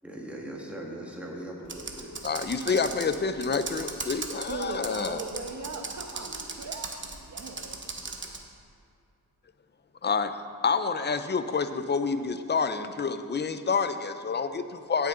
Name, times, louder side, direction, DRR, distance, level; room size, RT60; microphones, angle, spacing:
voice 1, 0.0-2.1, right 1 dB, 5° right, -2 dB, 1.8 m, -39 dB
Computer keyboard, 1.7-8.4, right 3 dB, 30° right, 0.9 m, -38 dB
voice 2, 2.2-5.2 10.0-10.4 10.6-15.1, left 5 dB, 30° left, 10 dB, 0.5 m, -28 dB
voice 3, 4.5-7.8, right 4 dB, 50° right, 4 dB, 1.1 m, -39 dB
16.5 x 6.6 x 3.9 m, 2.3 s
wide cardioid pair, 110°, 37 cm